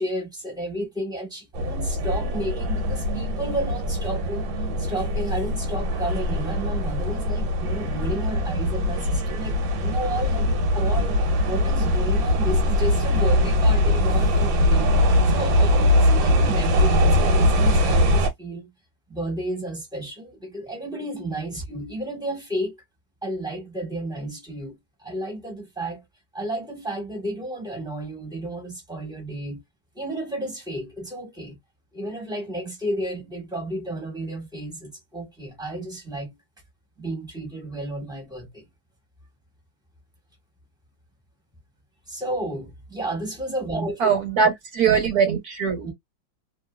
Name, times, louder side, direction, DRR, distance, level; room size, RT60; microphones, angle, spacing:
voice 1, 0.0-4.4 4.8-11.2 11.5-18.7 19.1-22.8 23.2-24.8 25.0-26.0 26.3-29.6 29.9-31.6 31.9-36.3 37.0-38.6 42.1-44.2 45.8-45.9, right 1 dB, 5° right, 1.1 m, -32 dB
sound 1, 1.5-18.3, left 1 dB, 85° right, 1.5 m, -21 dB
voice 2, 44.0-45.8, right 6 dB, 60° right, 1.2 m, -21 dB
3.0 x 2.7 x 2.3 m
omnidirectional pair, 2.1 m